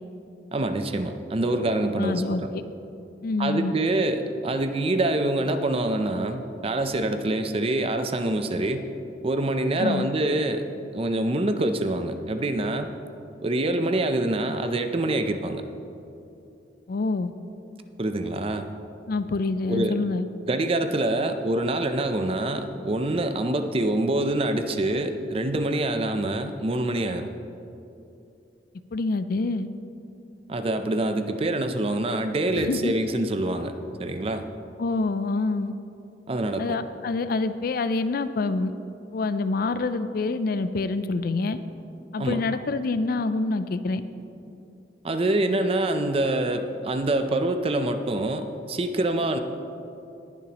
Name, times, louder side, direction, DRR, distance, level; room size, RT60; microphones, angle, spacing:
voice 1, 0.5-2.5 3.4-8.9 9.2-10.7 10.9-12.9 13.4-15.6 18.0-18.7 19.7-20.0 20.5-27.3 30.5-33.7 34.0-34.5 36.3-36.8 42.2-42.5 45.0-49.4, right 1 dB, 35° right, 8 dB, 0.5 m, -25 dB
voice 2, 2.0-2.6 3.2-3.7 9.8-10.1 16.9-17.3 19.1-20.3 28.9-29.7 32.5-32.9 34.8-35.7 36.6-38.7 39.1-41.6 42.1-44.0, left 3 dB, 55° left, 12 dB, 0.4 m, -26 dB
20.0 x 7.1 x 2.9 m, 2.8 s
head